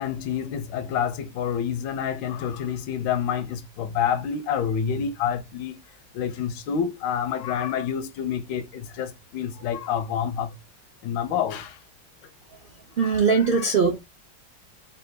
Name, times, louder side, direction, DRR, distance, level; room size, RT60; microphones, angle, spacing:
voice 1, 0.0-5.8 6.1-10.6 11.0-11.8 13.0-13.7, left 8 dB, 85° left, 1.3 m, -28 dB
voice 2, 13.0-14.0, right 5 dB, 85° right, 0.5 m, -20 dB
3.8 x 2.3 x 3.1 m
omnidirectional pair, 2.0 m